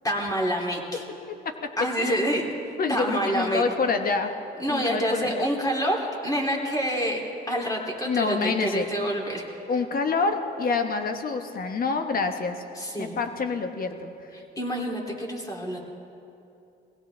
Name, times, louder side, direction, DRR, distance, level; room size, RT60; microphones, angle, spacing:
voice 1, 0.0-1.0 1.8-2.5 2.9-3.6 4.6-9.4 12.7-13.2 14.3-15.8, equal, 15° left, -1 dB, 2.9 m, -27 dB
voice 2, 2.8-4.3 4.7-5.5 8.0-8.9 9.7-12.6 13.0-14.1, left 4 dB, 45° left, 6 dB, 1.3 m, -27 dB
22.0 x 16.5 x 3.4 m, 2.7 s
cardioid pair, 90°, 20 cm